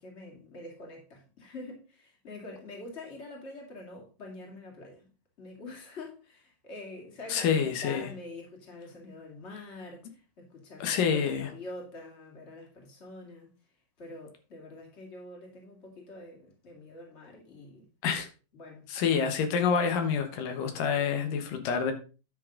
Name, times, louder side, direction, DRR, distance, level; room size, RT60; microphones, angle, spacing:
voice 1, 0.0-5.1 5.4-13.5 14.0-17.9 18.5-19.1, left 2 dB, 20° left, 2.3 m, -46 dB
voice 2, 7.3-8.1 10.8-11.5 18.0-18.3 18.9-21.9, left 6 dB, 85° left, 3.0 m, -27 dB
10.5 x 6.2 x 3.9 m
omnidirectional pair, 3.8 m